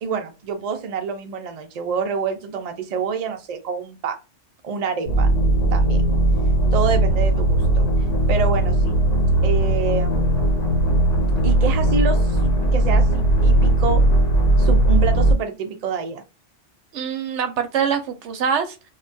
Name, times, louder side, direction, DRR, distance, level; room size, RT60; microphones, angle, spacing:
voice 1, 0.0-4.2 4.6-5.3 5.7-6.0 6.7-7.9 8.3-8.9 9.4-10.5 11.4-12.4 12.7-14.0 14.6-16.2, right 5 dB, 50° right, 0.5 m, -27 dB
sound 1, 5.1-15.3, right 1 dB, 55° left, 1.0 m, -18 dB
voice 2, 16.9-18.9, right 7 dB, 75° right, 0.9 m, -24 dB
2.2 x 2.2 x 3.9 m
omnidirectional pair, 1.2 m